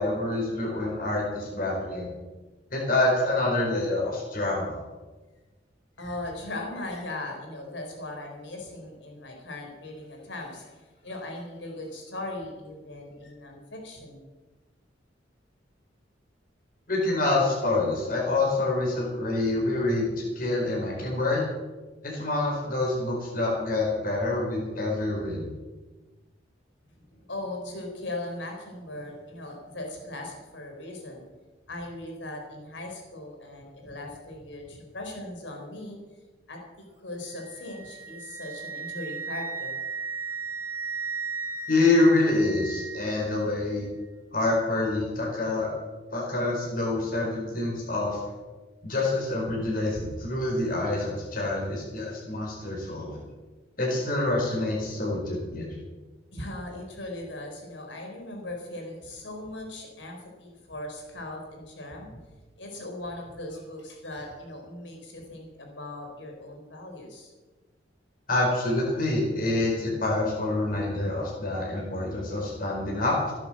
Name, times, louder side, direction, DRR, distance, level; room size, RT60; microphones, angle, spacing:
voice 1, 0.0-2.1 2.7-4.7 16.9-21.4 22.0-25.5 41.7-43.9 44.3-45.7 46.1-48.2 48.8-53.2 53.8-55.7 68.3-73.3, left 2 dB, 50° left, -3 dB, 4.7 m, -26 dB
voice 2, 6.0-14.2 27.1-31.3 31.7-36.0 36.5-39.7 56.3-62.2 62.6-67.3, left 1 dB, 80° left, 2 dB, 4.2 m, -39 dB
Wind instrument woodwind instrument, 37.4-43.3, right 4 dB, 15° right, 1.4 m, -35 dB
16.0 x 9.8 x 7.6 m, 1.2 s
head